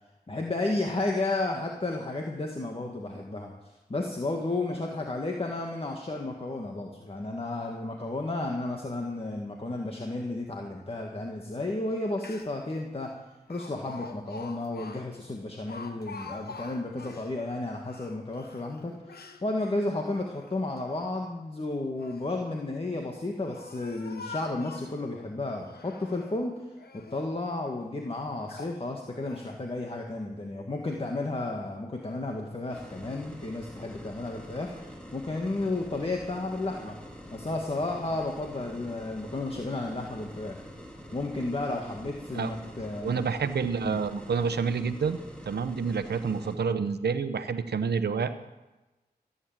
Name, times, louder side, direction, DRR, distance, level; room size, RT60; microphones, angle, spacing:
voice 1, 0.3-13.1 13.5-26.5 26.9-37.0 37.3-40.6 41.1-43.3 43.8-44.0, left 2 dB, 35° left, 1 dB, 1.8 m, -33 dB
Speech, 11.9-12.0 12.2-12.7 13.5-17.3 17.8-19.4 20.0-20.8 21.7-22.3 23.0-25.0 25.6-26.4 26.8-27.3 27.9-28.0 28.5-28.8 29.3-29.5, left 4 dB, 75° left, 1.4 m, -46 dB
sound 1, 32.7-46.6, equal, 5° left, 3.2 m, -45 dB
voice 2, 43.0-45.2 45.5-48.3, right 5 dB, 85° right, 10 dB, 0.9 m, -28 dB
15.0 x 9.8 x 7.4 m, 1.1 s
cardioid pair, 55°, 17 cm